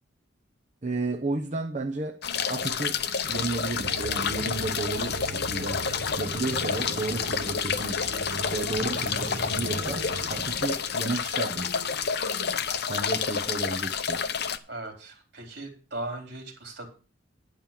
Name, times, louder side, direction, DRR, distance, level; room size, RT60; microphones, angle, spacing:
voice 1, 0.8-2.2 2.5-3.0 3.3-11.7 12.9-14.3, right 2 dB, 40° right, 0.9 m, -33 dB
sound 1, 2.2-14.6, left 6 dB, 60° left, 0.7 m, -29 dB
sound 2, 3.2-10.8, right 1 dB, 10° right, 1.8 m, -42 dB
sound 3, 3.8-10.3, right 2 dB, 75° right, 1.3 m, -39 dB
voice 2, 14.7-16.9, right 2 dB, 60° right, 3.9 m, -38 dB
11.0 x 5.4 x 7.4 m
head